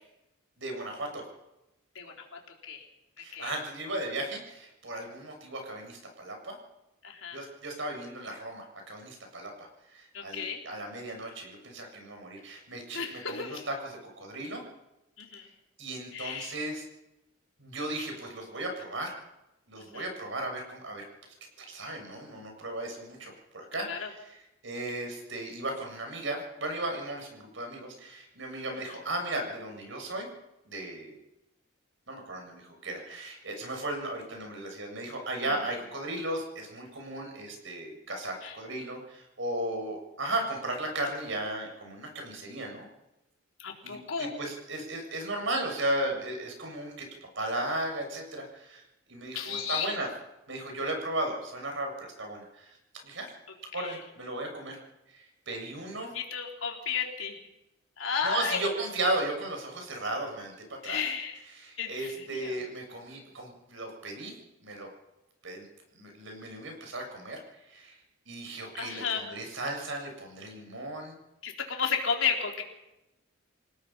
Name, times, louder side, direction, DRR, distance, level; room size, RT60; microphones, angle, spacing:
voice 1, 0.6-1.2 3.2-6.5 7.3-14.6 15.8-16.8 17.6-19.1 19.7-21.0 21.6-30.3 30.6-31.1 32.1-42.9 43.8-47.1 47.3-48.8 49.1-50.1 50.5-52.8 53.0-53.3 53.7-54.8 55.1-56.1 58.2-61.0 61.5-64.3 64.6-64.9 65.4-65.6 65.9-67.4 67.6-68.0 68.3-71.2, right 1 dB, 65° right, 3 dB, 6.8 m, -36 dB
voice 2, 3.2-3.5 7.0-7.4 10.1-10.6 12.9-13.7 15.2-15.5 16.1-16.6 19.8-20.1 23.8-24.1 35.5-35.7 38.4-38.5 43.6-44.3 49.3-49.9 53.8-54.0 56.1-57.4 58.0-58.7 60.8-61.4 61.8-62.6 68.7-69.3 71.4-72.6, left 6 dB, 70° left, 1 dB, 4.1 m, -33 dB
28.5 x 18.0 x 5.7 m, 0.94 s
head